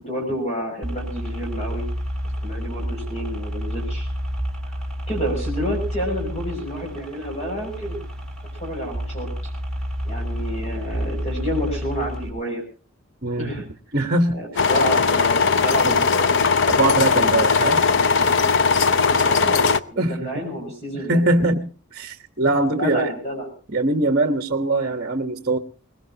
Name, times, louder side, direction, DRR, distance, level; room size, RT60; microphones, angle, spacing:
voice 1, 0.1-1.9 2.4-4.1 5.1-8.0 8.5-9.3 10.0-12.6 13.4-13.6 14.3-16.4 17.6-18.4 19.1-21.2 22.7-23.5, equal, 30° left, 1 dB, 6.3 m, -29 dB
sound 1, 0.8-12.3, equal, 5° left, 3.5 m, -30 dB
voice 2, 13.2-13.5 13.9-14.4 15.8-16.0 16.7-17.8 19.6-20.4 20.9-21.6 21.9-23.1 23.7-25.6, right 2 dB, 45° right, 7 dB, 1.2 m, -22 dB
sound 2, 14.6-19.8, left 5 dB, 55° left, 0.7 m, -18 dB
22.5 x 20.0 x 2.9 m, 0.38 s
head